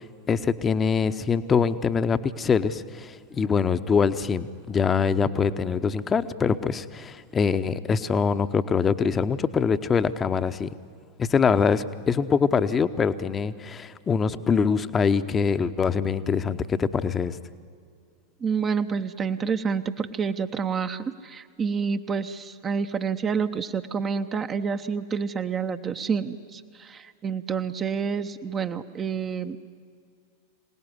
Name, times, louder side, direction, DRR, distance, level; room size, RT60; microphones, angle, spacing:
voice 1, 0.0-10.7 11.2-17.4, left 6 dB, 20° left, 11 dB, 0.9 m, -24 dB
voice 2, 18.4-29.6, right 6 dB, 25° right, 8 dB, 0.8 m, -28 dB
25.5 x 18.5 x 9.6 m, 2.2 s
figure-of-eight pair, 90°, 0 cm